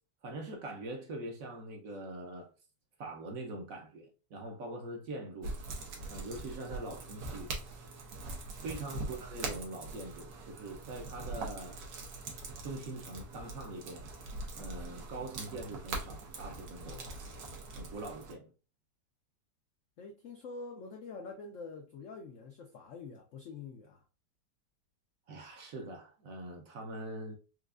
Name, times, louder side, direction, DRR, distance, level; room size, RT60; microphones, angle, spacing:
voice 1, 0.2-2.5 3.0-5.6 6.1-7.5 8.6-11.8 12.6-14.0 14.5-17.0 17.7-18.5 25.3-27.4, right 2 dB, 65° right, 0.9 m, -43 dB
sound 1, 5.4-18.3, right 3 dB, 90° right, 1.5 m, -42 dB
voice 2, 16.8-17.2 20.0-24.0, left 4 dB, 80° left, 0.6 m, -46 dB
4.5 x 2.5 x 2.4 m
omnidirectional pair, 1.9 m